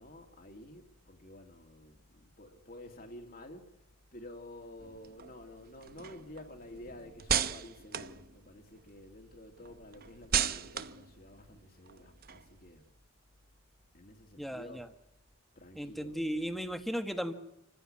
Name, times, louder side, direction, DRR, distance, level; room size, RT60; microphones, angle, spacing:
voice 1, 0.0-3.8 4.1-12.8 13.9-14.9 15.6-16.6, left 1 dB, 45° left, 2.5 m, -51 dB
sound 1, 4.8-9.0 9.3-12.8, right 9 dB, 45° right, 0.9 m, -36 dB
voice 2, 14.4-14.9 15.8-17.3, equal, ahead, 1.7 m, -36 dB
28.0 x 15.5 x 9.9 m
head